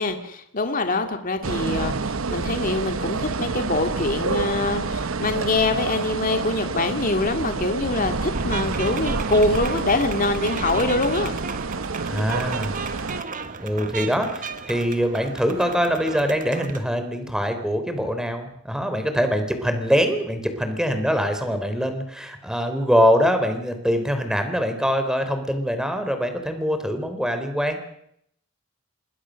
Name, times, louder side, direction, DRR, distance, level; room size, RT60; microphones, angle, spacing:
voice 1, 0.0-11.3, left 2 dB, 40° left, 6 dB, 2.2 m, -24 dB
sound 1, 1.4-13.2, right 3 dB, 75° right, 0.9 m, -28 dB
sound 2, 8.3-16.9, right 5 dB, 40° right, 1.6 m, -34 dB
voice 2, 12.1-12.8 13.6-27.8, equal, 5° right, 7 dB, 3.6 m, -23 dB
27.0 x 21.5 x 6.4 m, 0.72 s
head